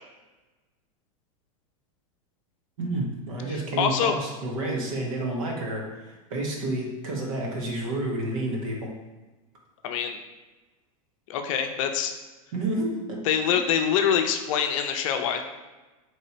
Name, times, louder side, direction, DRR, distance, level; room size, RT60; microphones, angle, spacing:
voice 1, 2.8-8.9 12.5-13.2 13.5-13.6, right 2 dB, 75° right, -1 dB, 1.2 m, -30 dB
voice 2, 3.5-4.2 9.8-10.2 11.3-12.1 13.2-15.4, left 8 dB, 65° left, 6 dB, 0.5 m, -25 dB
3.3 x 2.8 x 4.3 m, 1.2 s
supercardioid pair, 135°, 18 cm